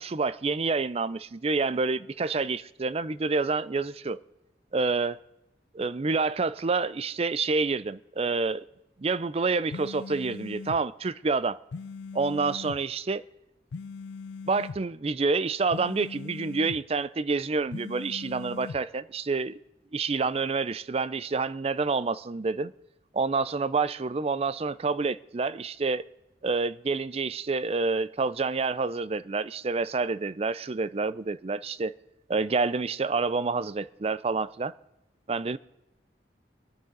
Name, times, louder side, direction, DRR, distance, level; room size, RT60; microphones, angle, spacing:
voice 1, 0.0-4.2 4.7-5.2 5.7-8.6 9.0-11.6 12.1-13.2 14.5-19.6 19.9-22.7 23.1-26.0 26.4-31.9 32.3-34.7 35.3-35.6, right 4 dB, 35° right, 0.5 m, -28 dB
sound 1, 9.7-10.8 11.7-12.8 13.7-14.8 15.7-16.8 17.7-18.8, left 4 dB, 85° left, 0.4 m, -40 dB
24.0 x 9.4 x 3.9 m
head